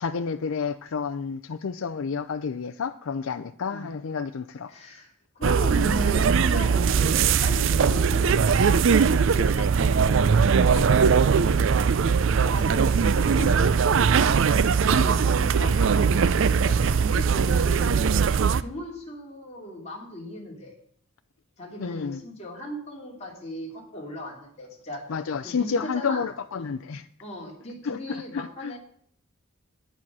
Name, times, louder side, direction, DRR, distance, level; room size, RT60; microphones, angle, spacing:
voice 1, 0.0-4.7 18.2-18.4 21.8-22.2 25.1-27.1 27.8-28.7, left 5 dB, 80° left, 0.5 m, -30 dB
voice 2, 4.7-5.1 5.3-10.8 12.4-14.0 14.7-18.2 18.6-20.7 21.6-25.0 25.4-26.3 26.6-26.7 27.2-28.8, equal, 30° left, 3.0 m, -37 dB
sound 1, 5.4-18.6, right 6 dB, 65° right, 0.4 m, -20 dB
11.0 x 8.7 x 6.1 m
head